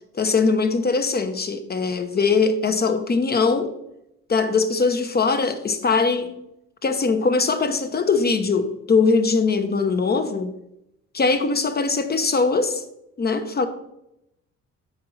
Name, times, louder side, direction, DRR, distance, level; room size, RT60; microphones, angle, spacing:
voice 1, 0.1-3.7 4.3-6.4 6.8-10.5 11.1-12.8 13.2-13.7, left 4 dB, 30° left, 1.1 m, -21 dB
7.5 x 5.3 x 5.7 m
cardioid pair, 90°, 30 cm